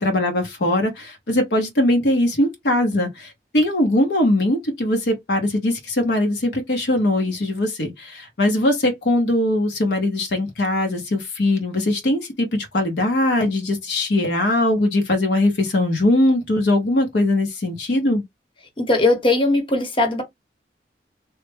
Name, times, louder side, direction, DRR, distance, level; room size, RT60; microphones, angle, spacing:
voice 1, 0.0-18.2, left 1 dB, 65° left, 0.8 m, -21 dB
voice 2, 18.8-20.2, left 2 dB, 30° left, 1.0 m, -19 dB
3.1 x 2.1 x 3.2 m
head